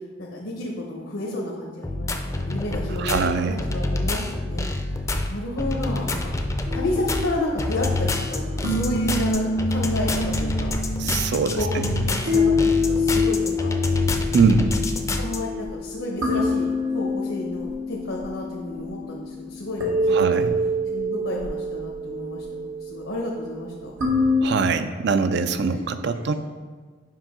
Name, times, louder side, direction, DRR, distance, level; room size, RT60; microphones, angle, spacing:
voice 1, 0.2-4.7 5.3-6.3 6.7-10.7 11.6-13.7 15.2-16.7 16.9-20.4 20.9-23.9 25.7-26.3, left 1 dB, 85° left, -3 dB, 1.0 m, -31 dB
sound 1, 1.8-15.4, left 2 dB, 15° left, 0.4 m, -27 dB
voice 2, 3.0-3.5 11.0-12.0 14.3-14.7 20.1-20.6 24.4-26.3, right 4 dB, 60° right, 10 dB, 0.4 m, -22 dB
sound 2, 6.7-24.4, left 2 dB, 85° right, 1.3 m, -26 dB
7.6 x 5.4 x 3.7 m, 1.5 s
head